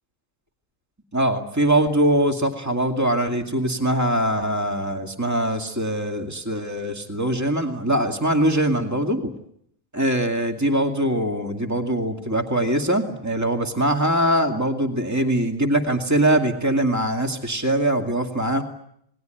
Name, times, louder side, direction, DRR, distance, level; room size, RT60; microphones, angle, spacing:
voice 1, 1.1-9.3 9.9-18.6, right 1 dB, 10° right, 4 dB, 2.4 m, -22 dB
28.0 x 20.5 x 9.2 m, 0.71 s
omnidirectional pair, 1.4 m